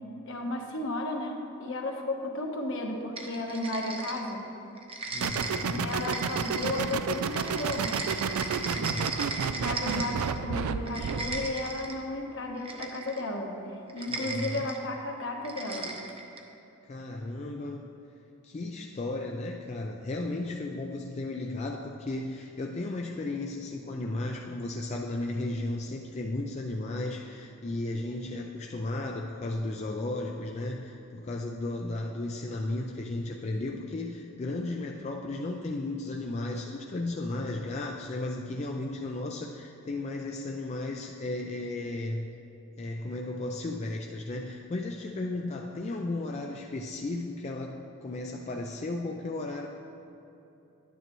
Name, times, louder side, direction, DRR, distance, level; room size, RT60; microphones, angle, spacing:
voice 1, 0.2-4.4 5.5-8.0 9.6-13.5 13.9-15.9, left 2 dB, 60° left, 1 dB, 1.1 m, -34 dB
sound 1, 3.2-4.5 4.8-10.4 10.8-12.0 12.6-13.3 13.9-14.8 15.4-16.5, right 3 dB, 25° right, 0.7 m, -37 dB
voice 2, 5.1-5.9 8.6-9.3 10.1-10.3 14.1-14.7 16.9-17.9 18.4-42.3 42.8-49.7, left 2 dB, 30° left, 1 dB, 0.4 m, -34 dB
sound 2, 5.2-11.5, right 6 dB, 90° right, 0.3 m, -31 dB
11.0 x 9.2 x 3.0 m, 2.9 s
head